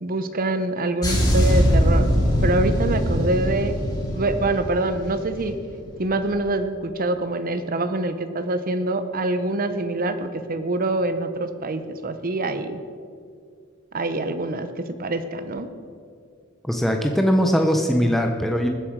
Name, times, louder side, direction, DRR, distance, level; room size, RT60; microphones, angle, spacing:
voice 1, 0.0-2.1 2.4-3.8 4.1-5.6 6.0-12.8 13.9-15.7, right 2 dB, 45° right, 10 dB, 0.8 m, -25 dB
sound 1, 1.0-5.6 5.8-6.1, equal, 20° left, 3.3 m, -21 dB
voice 2, 16.6-18.7, equal, ahead, 3 dB, 0.7 m, -20 dB
20.5 x 7.7 x 4.7 m, 2.3 s
head